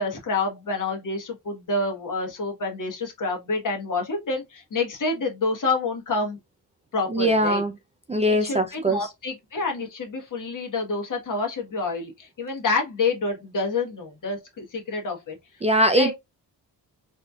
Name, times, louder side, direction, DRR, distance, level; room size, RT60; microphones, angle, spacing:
voice 1, 0.0-6.4 6.9-7.6 8.4-15.3 15.9-16.1, left 3 dB, 55° left, 1.3 m, -28 dB
voice 2, 7.1-7.7 8.1-9.1 15.6-16.1, equal, 20° right, 0.4 m, -21 dB
4.2 x 2.8 x 2.3 m
cardioid pair, 95°, 37 cm